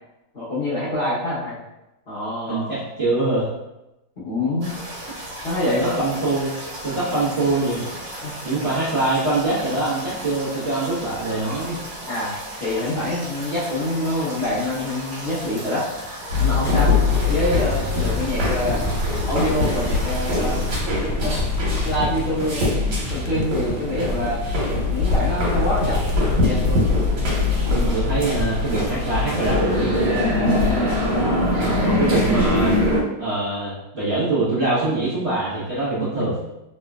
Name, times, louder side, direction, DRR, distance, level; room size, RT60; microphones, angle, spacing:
voice 1, 0.3-1.6 2.1-2.8 4.2-4.7 5.4-6.0 8.2-8.4 12.0-12.3 12.6-15.9 16.4-17.0 17.3-18.8 19.3-20.6 21.2-21.5 21.8-22.8 23.1-24.4 24.9-26.0 26.4-26.8 30.6-30.9 36.2-36.3, left 1 dB, 45° left, -12 dB, 0.8 m, -26 dB
voice 2, 2.5-3.5 5.6-6.5 6.8-7.9 8.4-11.8 27.7-30.2 31.6-32.8 33.2-36.4, right 2 dB, 40° right, -11 dB, 1.0 m, -24 dB
sound 1, 4.6-20.8, right 1 dB, 60° right, 1.5 m, -36 dB
sound 2, 16.3-33.0, left 2 dB, 85° right, 1.8 m, -22 dB
sound 3, 17.3-22.2 23.1-23.7 25.1-26.2, left 1 dB, 75° left, 1.1 m, -32 dB
3.3 x 2.9 x 2.3 m, 0.94 s
omnidirectional pair, 2.1 m